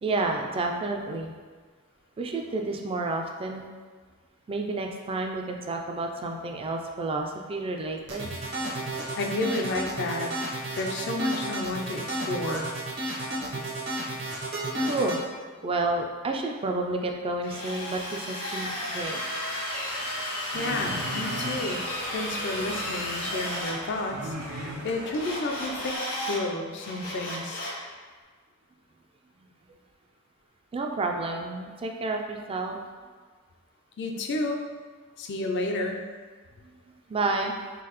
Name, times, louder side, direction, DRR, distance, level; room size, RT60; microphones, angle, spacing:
voice 1, 0.0-1.3 2.2-3.7 4.5-8.3 14.8-15.2 15.6-19.2 30.7-32.8 37.1-37.6, right 2 dB, 25° right, 3 dB, 0.3 m, -30 dB
sound 1, 8.1-15.2, right 1 dB, 50° right, 0.8 m, -32 dB
voice 2, 9.2-10.3 10.7-12.7 20.5-21.8 22.1-26.0 26.2-27.6 34.0-34.6 35.2-36.1, left 2 dB, 55° left, 3 dB, 0.4 m, -31 dB
Drill, 17.4-23.7 25.1-26.4 26.8-27.8, left 1 dB, 70° left, 1.1 m, -33 dB
sound 2, 20.5-26.0, right 1 dB, 80° right, 0.5 m, -38 dB
3.8 x 2.7 x 2.9 m, 1.5 s
head